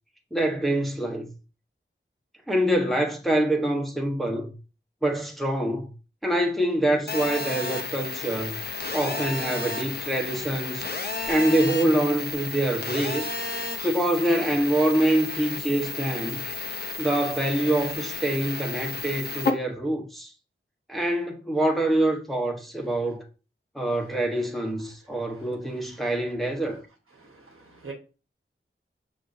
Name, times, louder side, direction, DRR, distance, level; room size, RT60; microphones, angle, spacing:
voice 1, 0.3-1.3 2.5-4.5 5.0-5.9 6.2-8.6 8.9-10.9 11.3-13.3 13.8-16.4 17.0-20.3 20.9-23.2 23.7-26.8, right 1 dB, ahead, 0.9 m, -25 dB
Telephone, 7.1-19.5, left 3 dB, 50° left, 0.7 m, -32 dB
voice 2, 25.1-25.5 25.7-26.0 27.2-27.9, right 4 dB, 85° right, 1.1 m, -46 dB
6.0 x 3.1 x 2.6 m
wide cardioid pair, 50°, 21 cm